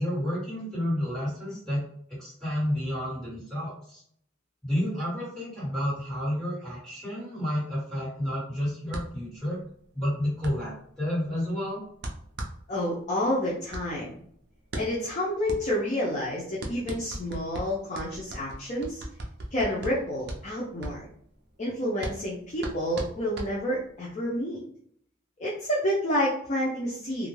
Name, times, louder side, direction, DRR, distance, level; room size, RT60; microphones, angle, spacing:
voice 1, 0.0-1.8 2.2-4.0 4.6-9.6 9.9-11.8, equal, 5° left, -10 dB, 1.5 m, -30 dB
sound 1, 8.9-24.0, right 1 dB, 55° right, 0.5 m, -39 dB
voice 2, 12.7-14.2 14.8-19.0 19.5-21.1 21.6-24.6 25.4-27.3, equal, 35° left, -6 dB, 0.5 m, -29 dB
2.4 x 2.1 x 3.1 m, 0.63 s
head